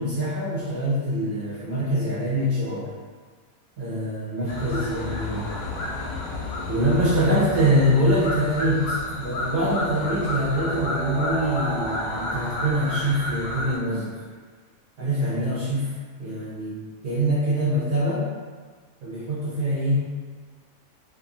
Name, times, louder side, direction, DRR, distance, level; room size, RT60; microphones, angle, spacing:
voice 1, 0.0-2.9 3.8-5.5 6.7-14.2 15.0-15.9 16.2-16.8 17.0-18.2 19.0-20.0, equal, 55° right, -9 dB, 0.8 m, -24 dB
sound 1, 4.5-13.8, left 2 dB, 80° left, 1.1 m, -31 dB
sound 2, 9.1-13.8, right 2 dB, 80° right, 0.4 m, -35 dB
2.6 x 2.5 x 2.7 m, 1.5 s
omnidirectional pair, 1.6 m